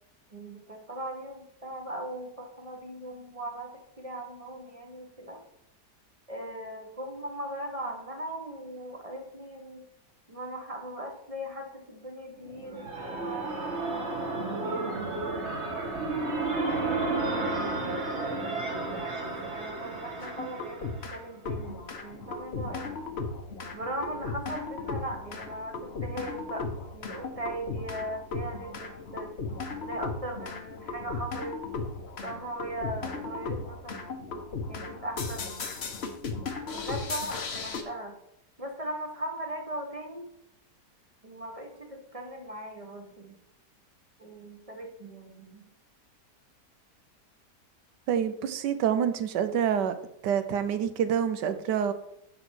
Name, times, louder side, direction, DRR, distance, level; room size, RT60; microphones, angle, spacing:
voice 1, 0.3-5.4 6.3-9.8 10.3-15.1 16.2-18.7 19.5-22.9 23.7-29.3 29.8-31.6 32.2-34.1 34.7-35.6 36.7-38.2 38.6-40.2 41.2-43.4 44.2-45.7, right 1 dB, 25° right, 3 dB, 1.0 m, -39 dB
sound 1, 12.5-21.3, right 3 dB, 40° right, 1.6 m, -32 dB
sound 2, 20.2-21.2 21.4-37.8, left 4 dB, 45° left, 1.0 m, -36 dB
voice 2, 48.1-49.9 50.2-51.9, right 8 dB, 80° right, 11 dB, 1.3 m, -27 dB
10.0 x 4.0 x 6.2 m, 0.78 s
omnidirectional pair, 1.8 m